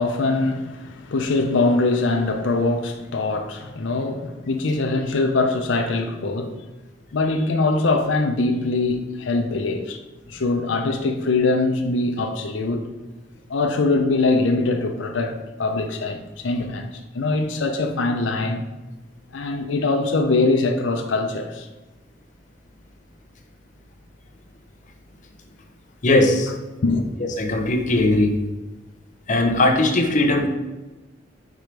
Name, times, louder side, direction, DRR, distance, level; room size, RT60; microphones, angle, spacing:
voice 1, 0.0-6.6 7.1-10.0 10.3-12.9 13.5-18.7 19.3-21.7 26.8-27.1, left 3 dB, 85° left, 0.6 m, -22 dB
voice 2, 26.0-26.5 27.2-28.3 29.3-30.5, left 2 dB, 40° left, 0.7 m, -19 dB
4.9 x 4.4 x 5.1 m
head